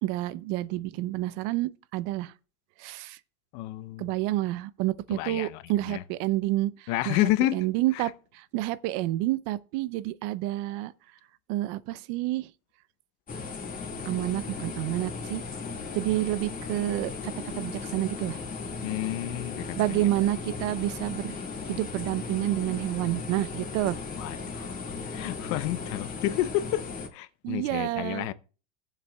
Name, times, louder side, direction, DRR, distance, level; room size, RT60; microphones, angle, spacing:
voice 1, 0.0-2.3 2.8-3.2 4.0-10.9 11.5-12.5 14.0-15.4 15.9-18.4 19.7-21.4 21.6-24.0 27.4-28.3, right 16 dB, 60° right, 0.6 m, -29 dB
voice 2, 3.5-4.1 5.1-5.6 5.9-6.0 6.9-7.6 7.9-8.1 18.8-20.1 24.2-24.8 25.1-26.8 27.1-28.3, left 15 dB, 60° left, 0.7 m, -30 dB
sound 1, 13.3-27.1, left 4 dB, 25° left, 1.9 m, -37 dB
20.5 x 7.4 x 2.3 m
supercardioid pair, 125°, 35 cm